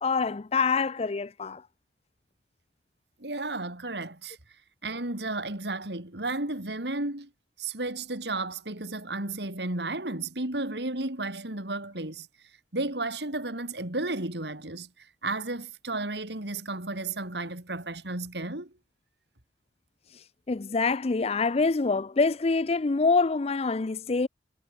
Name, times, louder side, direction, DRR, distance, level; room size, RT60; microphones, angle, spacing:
voice 1, 0.0-1.6 20.5-24.3, left 4 dB, 35° left, 0.5 m, -25 dB
voice 2, 3.2-4.4 4.8-7.3 7.6-12.3 12.7-18.7, right 2 dB, 70° right, 3.7 m, -33 dB
head